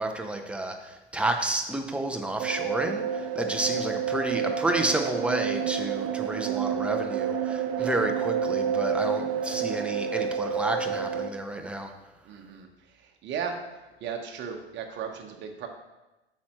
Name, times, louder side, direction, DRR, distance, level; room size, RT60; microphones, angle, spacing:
voice 1, 0.0-11.9, right 2 dB, 5° right, 4 dB, 0.7 m, -30 dB
sound 1, 2.4-11.3, right 7 dB, 60° right, 0.6 m, -29 dB
voice 2, 12.2-12.7 13.0-13.6 14.0-15.7, right 7 dB, 35° right, 3 dB, 1.2 m, -36 dB
8.3 x 6.2 x 3.1 m, 1.0 s
figure-of-eight pair, 85°, 32 cm